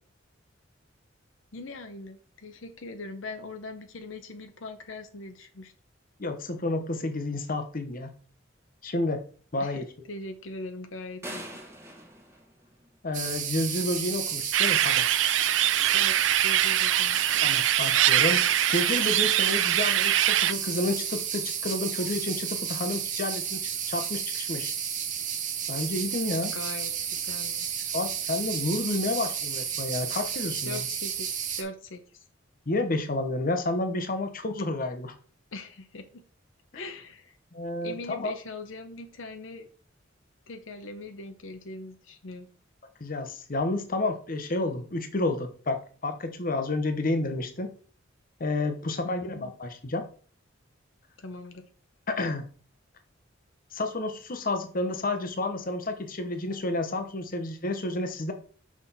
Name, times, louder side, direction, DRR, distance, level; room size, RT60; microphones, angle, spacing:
voice 1, 1.5-5.7 9.6-9.8 10.1-11.6 15.9-17.2 26.5-27.7 30.7-32.2 35.5-36.2 36.7-37.4 37.8-39.7 40.5-42.5 49.0-49.5 51.2-51.6, left 2 dB, 80° left, 7 dB, 0.8 m, -41 dB
voice 2, 6.2-8.1 8.8-9.2 9.5-9.9 13.0-15.1 17.4-24.7 25.7-26.5 27.9-30.9 32.7-35.1 36.7-36.9 37.5-38.3 43.0-45.8 46.0-47.7 48.4-50.1 52.1-52.5 53.7-58.3, left 2 dB, 45° left, 7 dB, 1.0 m, -30 dB
sound 1, 11.2-13.4, right 1 dB, 15° right, 1.4 m, -43 dB
sound 2, 13.1-31.6, right 8 dB, 40° right, 0.9 m, -32 dB
sound 3, 14.5-20.5, right 12 dB, 70° right, 0.4 m, -23 dB
6.1 x 6.0 x 4.1 m, 0.42 s
head